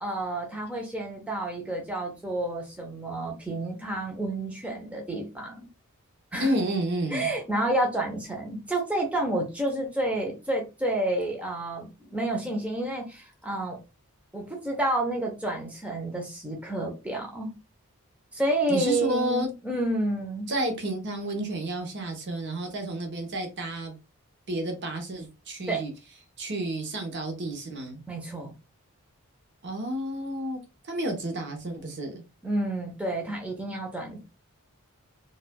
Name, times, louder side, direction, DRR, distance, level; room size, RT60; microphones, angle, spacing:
voice 1, 0.0-5.7 6.3-6.5 7.1-13.8 14.3-17.5 18.3-20.5 25.7-25.8 28.1-28.5 32.4-34.2, right 1 dB, 5° right, 0.7 m, -30 dB
voice 2, 6.4-7.3 18.7-19.5 20.5-23.9 24.5-25.9 26.4-28.0 29.6-32.2, right 1 dB, 50° right, 0.8 m, -31 dB
4.3 x 2.4 x 2.2 m
head